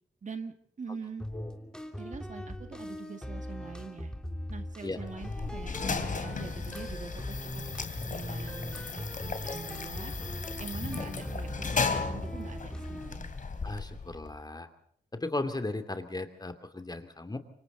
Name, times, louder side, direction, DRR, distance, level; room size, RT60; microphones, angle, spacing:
voice 1, 0.2-1.3 2.0-4.1 4.5-7.6 8.1-10.1 10.6-13.3, right 5 dB, 50° right, 8 dB, 2.0 m, -44 dB
sound 1, 1.2-13.2, equal, 5° left, 3.1 m, -40 dB
sound 2, 5.0-14.3, left 4 dB, 55° left, 2.8 m, -35 dB
voice 2, 13.6-14.7 15.1-17.4, left 2 dB, 25° left, 8 dB, 2.8 m, -36 dB
26.5 x 24.0 x 4.0 m, 0.66 s
cardioid pair, 65°, 17 cm